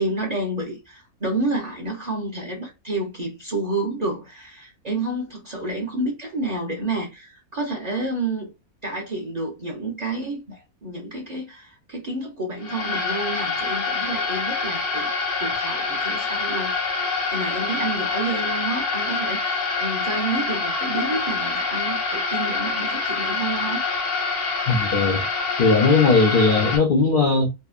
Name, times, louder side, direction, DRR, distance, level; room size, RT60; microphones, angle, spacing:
voice 1, 0.0-8.5 8.8-15.1 15.4-23.8, right 2 dB, 45° right, 0.5 m, -29 dB
sound 1, 12.6-26.8, left 4 dB, 85° left, 1.2 m, -26 dB
voice 2, 24.7-25.2 25.6-27.5, left 4 dB, 70° left, 0.5 m, -18 dB
2.7 x 2.1 x 2.4 m
omnidirectional pair, 1.5 m